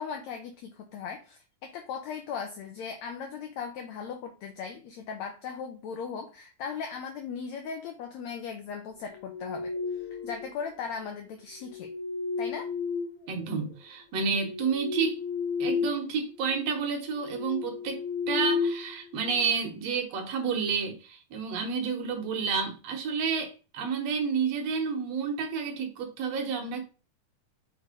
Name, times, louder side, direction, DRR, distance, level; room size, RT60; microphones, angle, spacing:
voice 1, 0.0-9.7 10.2-11.9 12.4-12.7, left 6 dB, 75° left, 1.7 m, -38 dB
sound 1, 9.1-10.6 11.6-13.7 14.2-16.1 16.4-16.6 17.1-19.5, left 5 dB, 55° left, 1.8 m, -33 dB
voice 2, 13.3-15.2 15.6-18.0 18.3-26.8, right 5 dB, 60° right, 2.1 m, -30 dB
6.5 x 3.1 x 5.1 m
omnidirectional pair, 3.9 m